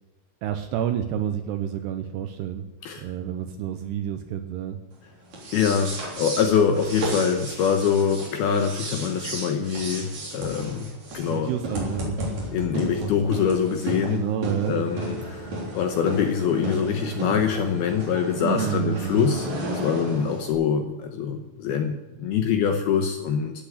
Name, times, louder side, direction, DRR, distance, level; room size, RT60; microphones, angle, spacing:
voice 1, 0.4-2.6 3.0-4.8 11.3-12.2 12.5-13.4 14.1-14.8 18.4-19.3, right 10 dB, 80° right, 7 dB, 2.5 m, -29 dB
sound 1, 5.3-20.5, right 1 dB, 40° right, 4.4 m, -33 dB
voice 2, 5.5-10.9 11.1-11.5 12.5-14.2 14.7-19.5 19.8-23.5, left 7 dB, 75° left, 5 dB, 2.4 m, -24 dB
14.0 x 8.5 x 8.6 m, 1.1 s
omnidirectional pair, 5.6 m